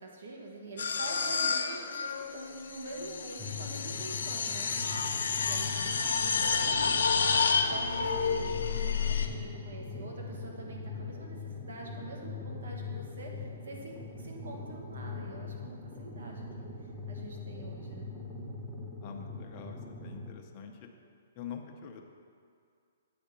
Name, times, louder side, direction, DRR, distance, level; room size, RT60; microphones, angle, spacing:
voice 1, 0.0-7.0 7.7-16.7 17.1-18.1, right 2 dB, 75° right, 0 dB, 1.7 m, -45 dB
sound 1, 0.8-9.3, left 5 dB, 80° left, 0.6 m, -30 dB
sound 2, 3.4-20.3, left 3 dB, ahead, 0.9 m, -42 dB
voice 2, 19.0-20.9 21.3-22.1, left 7 dB, 35° left, 2 dB, 0.8 m, -45 dB
8.8 x 4.3 x 6.8 m, 2.3 s
hypercardioid pair, 150°, 0 cm